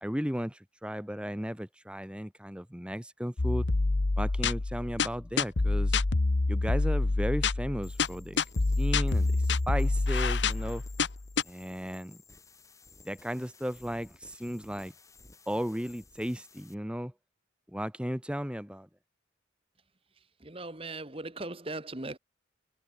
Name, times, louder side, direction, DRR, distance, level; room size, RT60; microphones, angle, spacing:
voice 1, 0.0-3.7 4.2-6.0 6.5-8.4 8.8-9.3 9.7-10.8 11.4-12.2 13.0-14.9 15.5-17.1 17.7-18.9, equal, 5° right, 1.6 m, -35 dB
sound 1, 3.4-11.4, left 3 dB, 65° left, 1.0 m, -27 dB
sound 2, 7.8-16.7, left 3 dB, 15° left, 5.5 m, -56 dB
voice 2, 20.4-22.2, right 2 dB, 30° right, 1.5 m, -39 dB
head